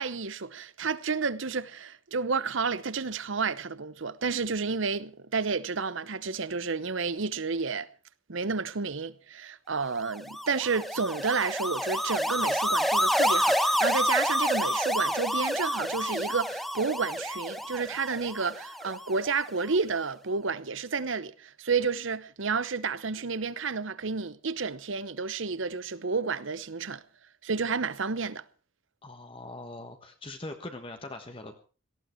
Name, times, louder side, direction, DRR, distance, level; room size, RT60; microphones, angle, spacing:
voice 1, 0.0-7.9 8.3-27.0 27.4-28.4, right 4 dB, 70° right, 0.9 m, -31 dB
sound 1, 10.1-19.4, equal, ahead, 0.9 m, -28 dB
voice 2, 29.0-31.6, left 2 dB, 25° left, 1.3 m, -41 dB
18.0 x 15.5 x 4.5 m
head